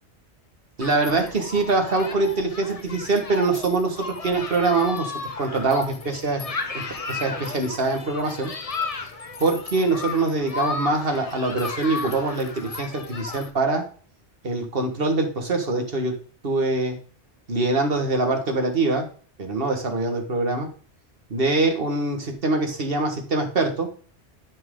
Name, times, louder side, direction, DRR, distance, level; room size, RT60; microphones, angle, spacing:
Human group actions, 0.8-13.5, left 4 dB, 35° left, 0.9 m, -34 dB
voice 1, 0.8-6.5 6.7-8.5 9.4-13.8 14.4-16.2 16.4-17.0 17.5-19.1 19.4-20.7 21.3-23.9, right 3 dB, 55° right, 3 dB, 1.8 m, -24 dB
12.0 x 4.6 x 3.8 m, 0.42 s
omnidirectional pair, 1.2 m